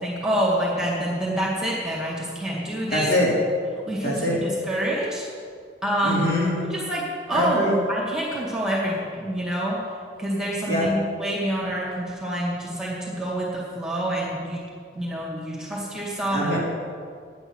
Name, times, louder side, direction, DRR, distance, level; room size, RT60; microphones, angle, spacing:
voice 1, 0.0-3.1 3.9-5.2 5.8-6.2 6.7-7.6 7.9-14.6 14.9-16.6, right 1 dB, 5° right, -5 dB, 2.0 m, -27 dB
voice 2, 2.9-3.3 4.0-4.4 6.0-6.6 7.3-7.8 10.7-10.9 16.3-16.6, left 1 dB, 60° left, -5 dB, 3.4 m, -23 dB
9.8 x 8.5 x 6.2 m, 2.1 s
head